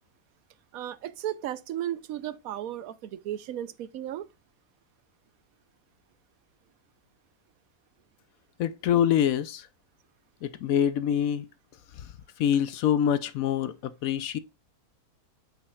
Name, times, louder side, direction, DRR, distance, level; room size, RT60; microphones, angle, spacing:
voice 1, 0.7-4.3, right 11 dB, 70° right, 1.0 m, -35 dB
voice 2, 8.6-9.7 10.4-11.5 12.4-14.4, left 9 dB, 70° left, 1.0 m, -25 dB
7.5 x 5.8 x 2.3 m
omnidirectional pair, 1.6 m